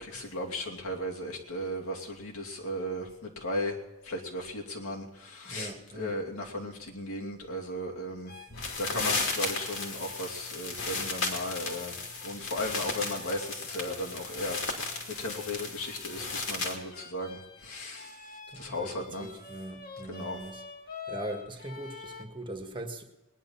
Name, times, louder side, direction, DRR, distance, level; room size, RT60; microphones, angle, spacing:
voice 1, 0.0-8.3 8.8-11.9 12.2-19.3 20.1-20.4, left 1 dB, 85° left, 2.7 m, -36 dB
voice 2, 5.4-6.2 8.9-9.1 18.5-20.6 21.1-23.0, right 2 dB, 25° right, 1.6 m, -41 dB
sound 1, 8.2-12.3 12.9-22.3, left 5 dB, 45° left, 1.4 m, -48 dB
sound 2, 8.5-16.8, left 3 dB, 65° left, 2.6 m, -35 dB
20.0 x 10.5 x 5.7 m
head